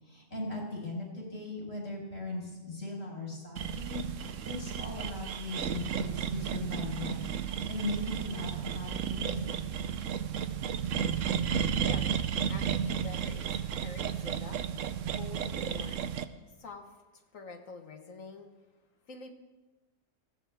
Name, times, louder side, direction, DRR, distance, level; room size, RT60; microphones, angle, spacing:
voice 1, 0.0-7.3 7.7-9.5, left 2 dB, 60° left, -3 dB, 5.2 m, -38 dB
sound 1, 3.6-16.2, right 8 dB, 75° right, 1.1 m, -33 dB
voice 2, 11.7-12.1 12.5-14.6 15.1-16.0 16.6-18.5 19.1-19.3, left 4 dB, 80° left, 4 dB, 1.8 m, -46 dB
20.0 x 15.5 x 3.5 m, 1.2 s
omnidirectional pair, 1.4 m